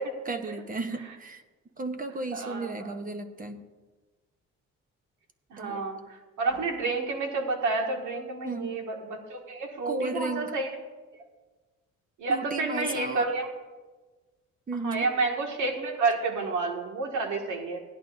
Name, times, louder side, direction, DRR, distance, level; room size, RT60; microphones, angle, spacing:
voice 1, 0.3-1.4 1.8-3.6 5.6-5.8 8.4-8.7 9.8-10.5 12.3-13.3 14.7-15.1, right 3 dB, 30° right, 7 dB, 0.9 m, -34 dB
voice 2, 2.3-3.0 5.5-10.7 12.2-13.5 14.8-17.8, right 3 dB, 75° right, 1 dB, 2.0 m, -30 dB
16.5 x 11.0 x 2.6 m, 1.3 s
cardioid pair, 90°, 30 cm